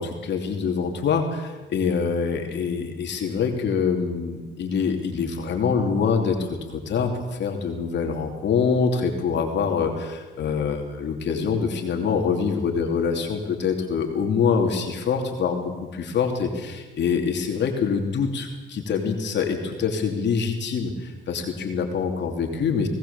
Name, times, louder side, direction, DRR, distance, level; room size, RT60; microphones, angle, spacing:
voice 1, 0.0-22.9, left 6 dB, 65° left, 3 dB, 3.1 m, -25 dB
20.0 x 18.5 x 7.2 m, 1.2 s
cardioid pair, 90°, 20 cm